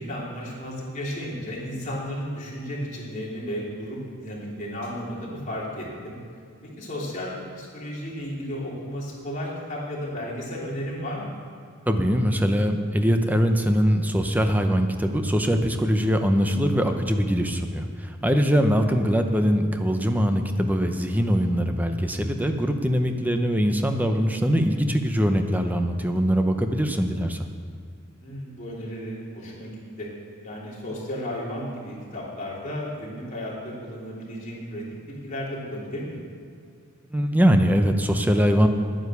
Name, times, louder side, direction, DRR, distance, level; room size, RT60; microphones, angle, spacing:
voice 1, 0.0-6.2 6.8-11.4 18.5-18.6 28.2-30.1 30.4-36.3, equal, 35° left, -5 dB, 3.2 m, -34 dB
voice 2, 11.9-27.4 37.1-38.7, equal, 10° right, 6 dB, 0.7 m, -22 dB
10.0 x 9.6 x 6.9 m, 2.3 s
head